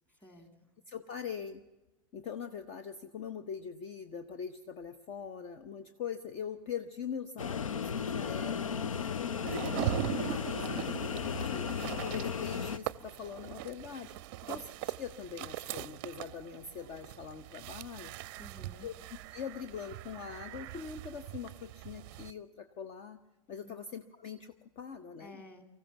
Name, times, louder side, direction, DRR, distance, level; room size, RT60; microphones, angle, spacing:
voice 1, 0.2-0.7 14.5-14.6 18.4-18.9 23.6-23.8 25.2-25.7, left 1 dB, 10° left, 8 dB, 2.6 m, -53 dB
voice 2, 0.9-1.6 2.1-10.0 10.3-10.8 11.2-11.7 12.0-18.1 18.8-19.0 19.2-23.2 23.5-25.4, left 7 dB, 35° left, 10 dB, 0.9 m, -42 dB
sound 1, 7.4-12.8, left 6 dB, 70° left, 0.6 m, -35 dB
sound 2, 9.5-22.3, right 14 dB, 40° right, 0.6 m, -41 dB
24.5 x 15.0 x 7.1 m, 1.1 s
figure-of-eight pair, 95°, 18 cm